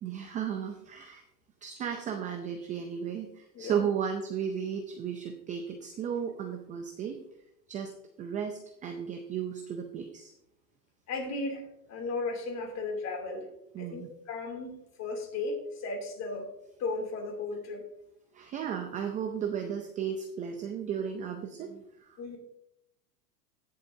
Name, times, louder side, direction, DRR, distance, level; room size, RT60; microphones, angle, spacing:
voice 1, 0.0-1.2 1.6-7.2 7.7-7.9 8.2-10.3 13.7-14.1 18.3-22.4, right 8 dB, 15° right, 5 dB, 0.4 m, -34 dB
voice 2, 3.5-3.9 11.1-13.5 13.8-14.7 15.0-16.5 16.8-17.8 22.2-22.4, left 3 dB, 30° left, 3 dB, 2.8 m, -35 dB
16.5 x 7.6 x 2.7 m, 0.79 s
supercardioid pair, 135°, 50 cm